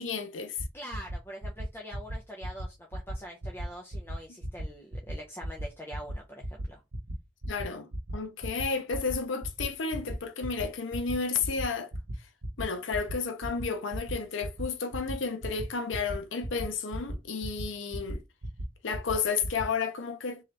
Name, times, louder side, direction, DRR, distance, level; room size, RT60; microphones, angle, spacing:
voice 1, 0.0-0.6 7.5-11.9 12.6-18.2 18.8-20.4, left 5 dB, 85° left, 0.6 m, -32 dB
sound 1, 0.6-0.7 0.9-1.2 1.4-1.7 1.9-2.1 2.4-2.6 2.9-3.1 3.4-3.6 3.9-4.1 4.4-4.6 4.9-5.1 5.4-5.6 5.9-6.1 6.4-6.6 6.9-7.1 7.4-7.6 7.9-8.1 8.4-8.6 8.9-9.1 9.4-9.6 9.9-10.1 10.4-10.6 10.9-11.1 11.4-11.6 11.9-12.1 12.4-12.6 12.9-13.1 13.4-13.6 13.9-14.1 14.4-14.6 14.9-15.1 15.4-15.6 15.9-16.1 16.4-16.6 16.9-17.1 17.4-17.6 17.9-18.1 18.4-18.6 18.9-19.1 19.4-19.6, right 1 dB, 80° right, 0.9 m, -36 dB
voice 2, 0.7-6.8, equal, 10° left, 0.6 m, -44 dB
3.7 x 3.0 x 3.3 m
head